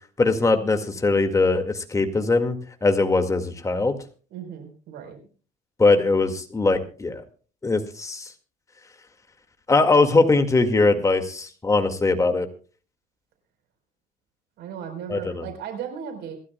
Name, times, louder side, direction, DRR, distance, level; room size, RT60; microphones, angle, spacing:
voice 1, 0.2-4.0 5.8-7.2 7.6-8.3 9.7-12.5 15.1-15.5, left 3 dB, 20° left, 6 dB, 2.0 m, -21 dB
voice 2, 4.3-5.2 14.6-16.4, right 8 dB, 80° right, 6 dB, 4.3 m, -36 dB
26.5 x 12.5 x 2.3 m, 0.38 s
cardioid pair, 110°, 17 cm